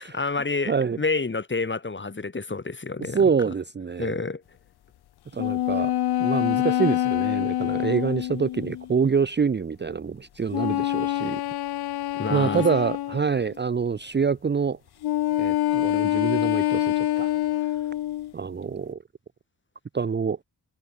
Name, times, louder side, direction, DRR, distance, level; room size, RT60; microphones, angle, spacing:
voice 1, 0.0-3.2 4.0-4.4 12.1-12.6, left 3 dB, 30° left, 6.7 m, -29 dB
voice 2, 0.7-1.0 3.1-4.1 5.3-5.9 6.2-11.4 12.3-14.8 15.4-17.3 18.3-19.0 19.9-20.4, right 5 dB, 25° right, 0.7 m, -26 dB
sound 1, 5.4-8.9 10.5-13.4 15.0-18.3, left 13 dB, 70° left, 0.5 m, -26 dB
wide cardioid pair, 135°, 39 cm